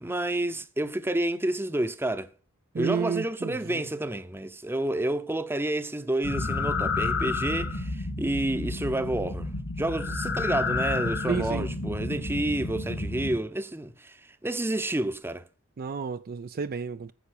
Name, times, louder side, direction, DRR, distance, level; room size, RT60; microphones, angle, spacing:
voice 1, 0.0-2.3 2.8-9.5 9.8-15.4, right 1 dB, 10° right, 0.7 m, -29 dB
voice 2, 2.7-3.9 11.3-11.7 15.8-17.1, right 6 dB, 45° right, 0.4 m, -31 dB
sound 1, 6.2-13.4, left 3 dB, 75° left, 3.5 m, -30 dB
10.0 x 7.2 x 6.6 m
head